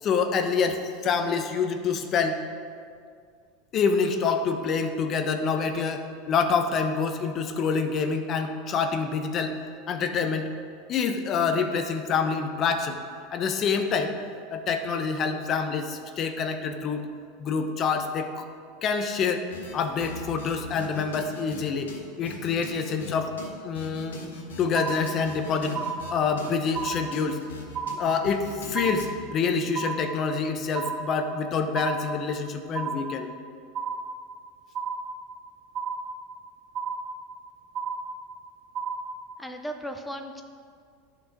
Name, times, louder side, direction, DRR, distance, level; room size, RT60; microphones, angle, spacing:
voice 1, 0.0-2.4 3.7-9.5 9.9-10.5 10.9-13.0 13.3-14.2 14.5-17.0 17.4-18.5 18.8-19.5 19.7-23.3 23.6-24.2 24.6-27.4 28.0-33.3, left 5 dB, 40° left, 7 dB, 0.7 m, -27 dB
sound 1, 19.5-21.6 21.9-22.0 22.3-23.1 23.4-23.5 23.7-26.1 26.4-29.1, left 4 dB, 90° left, 1.3 m, -40 dB
sound 2, 24.8-25.4 25.8-26.4 26.8-27.4 27.8-28.4 28.8-29.4 29.8-30.4 30.8-31.4 31.8-32.4 32.8-33.4 33.8-34.4 34.8-35.4 35.8-36.4 36.8-37.4 37.8-38.4 38.8-39.4, right 5 dB, 35° right, 0.7 m, -33 dB
voice 2, 39.4-40.4, equal, 5° left, 4 dB, 0.6 m, -36 dB
10.5 x 4.6 x 5.1 m, 2.2 s
hypercardioid pair, 100°, 0 cm